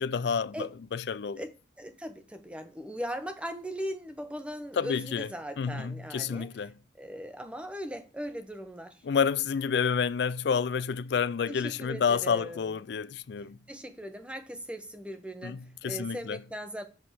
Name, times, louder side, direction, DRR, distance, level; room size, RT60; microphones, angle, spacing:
voice 1, 0.0-1.4 4.8-5.3 5.6-6.7 9.0-13.6 15.4-16.4, left 6 dB, 60° left, 0.4 m, -29 dB
voice 2, 1.4-6.5 7.0-9.0 11.5-12.7 13.7-16.8, equal, 5° right, 1.0 m, -39 dB
8.0 x 3.9 x 6.4 m
head